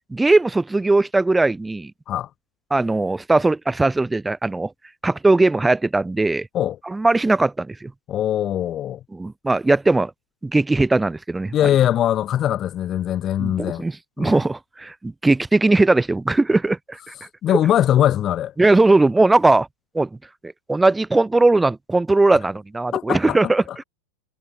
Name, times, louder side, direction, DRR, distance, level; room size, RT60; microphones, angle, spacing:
voice 1, 0.1-1.9 2.7-4.7 5.0-6.5 6.9-7.9 9.1-10.1 10.4-11.7 13.4-17.1 18.6-19.7 19.9-20.1 20.4-23.8, right 2 dB, 10° right, 1.0 m, -19 dB
voice 2, 8.1-9.0 11.5-13.8 14.2-14.4 17.4-18.5 22.9-23.4, left 11 dB, 30° left, 0.6 m, -21 dB
figure-of-eight pair, 90°, 0 cm